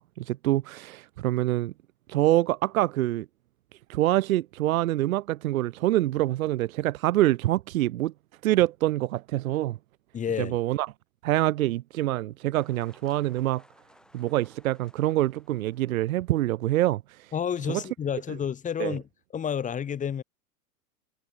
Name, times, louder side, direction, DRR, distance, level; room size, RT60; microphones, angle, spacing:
voice 1, 0.0-1.7 2.1-3.3 3.9-8.1 8.4-9.8 10.4-10.9 11.2-13.6 14.1-17.2 17.7-17.8 18.8-18.9, right 15 dB, 70° right, 0.7 m, -25 dB
voice 2, 10.1-10.6 17.3-20.2, left 8 dB, 15° left, 1.4 m, -30 dB
sound 1, 12.5-16.3, left 1 dB, ahead, 3.0 m, -59 dB
hypercardioid pair, 110°, 43 cm